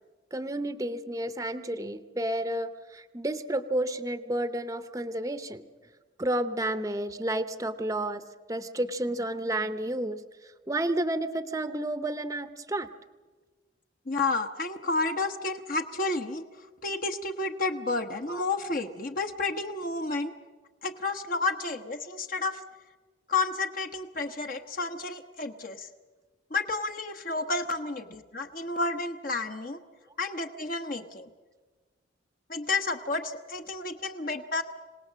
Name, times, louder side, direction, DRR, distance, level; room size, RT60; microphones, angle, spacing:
voice 1, 0.3-5.6 6.2-8.2 8.5-12.9 18.3-18.4, right 1 dB, 15° right, 11 dB, 0.7 m, -31 dB
voice 2, 14.1-16.4 16.8-20.3 20.8-22.6 23.3-25.9 26.5-29.8 30.2-31.3 32.5-34.6, left 3 dB, 45° left, 6 dB, 1.0 m, -31 dB
26.5 x 18.5 x 7.5 m, 1.4 s
head